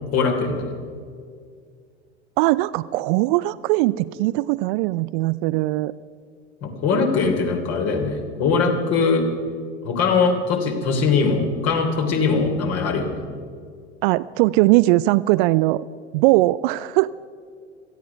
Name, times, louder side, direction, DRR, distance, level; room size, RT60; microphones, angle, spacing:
voice 1, 0.1-0.7 6.6-9.2 9.8-13.2, left 4 dB, 45° left, 3 dB, 3.2 m, -21 dB
voice 2, 2.4-5.9 14.0-15.8 16.1-17.1, right 19 dB, 45° right, 17 dB, 0.4 m, -20 dB
17.5 x 13.5 x 5.8 m, 2.1 s
figure-of-eight pair, 80°, 35 cm